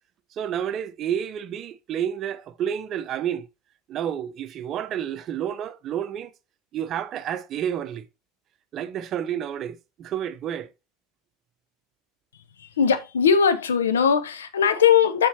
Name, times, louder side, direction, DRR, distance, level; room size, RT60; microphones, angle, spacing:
voice 1, 0.3-3.5 3.9-6.3 6.7-8.0 8.7-10.7, right 9 dB, 45° right, 0.6 m, -30 dB
voice 2, 12.6-15.3, left 7 dB, 75° left, 0.7 m, -20 dB
7.1 x 5.3 x 2.7 m
figure-of-eight pair, 75°, 0 cm